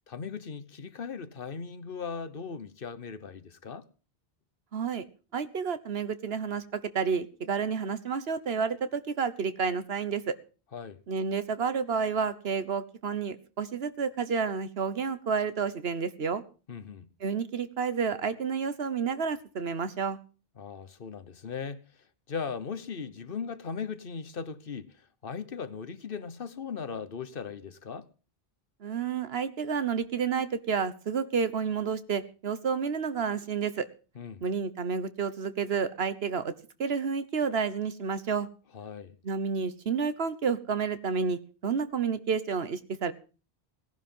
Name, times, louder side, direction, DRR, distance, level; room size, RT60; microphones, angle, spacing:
voice 1, 0.1-3.9 10.7-11.0 16.7-17.1 20.6-21.8 22.3-28.1 34.1-34.4 38.7-39.2, left 6 dB, 60° left, 1.2 m, -38 dB
voice 2, 4.7-5.0 5.3-10.3 11.1-16.4 17.2-20.2 28.8-33.8 34.4-36.5 36.8-38.5 39.2-43.1, right 6 dB, 75° right, 1.3 m, -30 dB
18.0 x 11.0 x 5.5 m
omnidirectional pair, 1.0 m